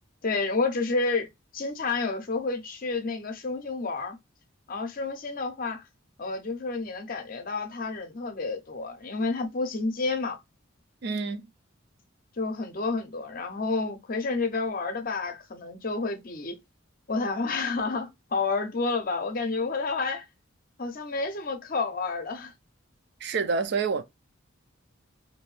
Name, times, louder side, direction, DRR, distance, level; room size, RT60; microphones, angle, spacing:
voice 1, 0.2-4.2 4.7-5.8 6.2-10.4 12.4-16.6 17.1-20.3 20.8-22.5, left 3 dB, 45° left, 0.6 m, -30 dB
voice 2, 11.0-11.5 23.2-24.0, right 4 dB, 55° right, 0.4 m, -27 dB
2.6 x 2.6 x 3.1 m
head